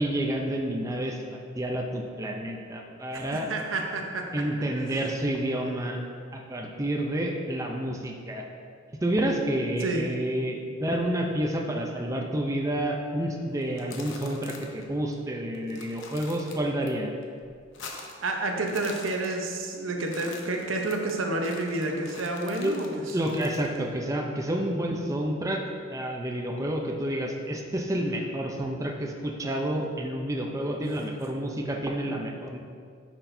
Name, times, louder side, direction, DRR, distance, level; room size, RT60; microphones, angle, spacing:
voice 1, 0.0-3.5 4.3-6.0 6.3-8.4 9.0-17.1 22.6-22.8 23.1-25.6 25.9-32.6, right 1 dB, 15° right, 1 dB, 0.5 m, -29 dB
voice 2, 3.1-4.3 9.8-10.0 18.2-22.9, right 2 dB, 75° right, 2 dB, 0.9 m, -29 dB
sound 1, 13.6-14.8 15.1-15.2 15.5-16.9 17.2-18.3 18.6-19.7 20.0-23.8, left 4 dB, 65° left, 0.9 m, -45 dB
9.9 x 6.1 x 2.7 m, 2.1 s
head